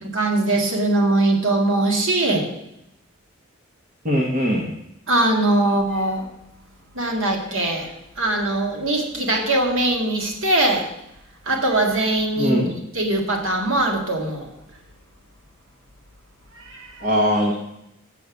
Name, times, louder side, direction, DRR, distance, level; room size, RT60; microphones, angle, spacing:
voice 1, 0.0-2.5 5.1-6.3 6.9-10.9 11.5-12.6 12.9-14.5 16.5-17.1, right 2 dB, 65° right, 2 dB, 1.9 m, -21 dB
voice 2, 4.0-4.7 12.4-12.7 17.0-17.5, equal, 40° right, -1 dB, 1.3 m, -20 dB
6.9 x 6.6 x 7.1 m, 0.82 s
head